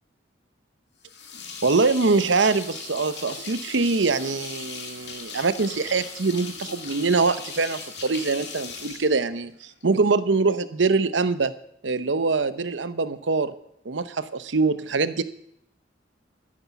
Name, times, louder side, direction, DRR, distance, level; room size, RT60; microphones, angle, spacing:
sound 1, 1.0-9.8, left 5 dB, 65° left, 2.1 m, -38 dB
voice 1, 1.6-11.5 11.8-13.5 13.8-15.2, right 4 dB, 90° right, 13 dB, 0.8 m, -23 dB
13.5 x 9.9 x 5.9 m, 0.71 s
head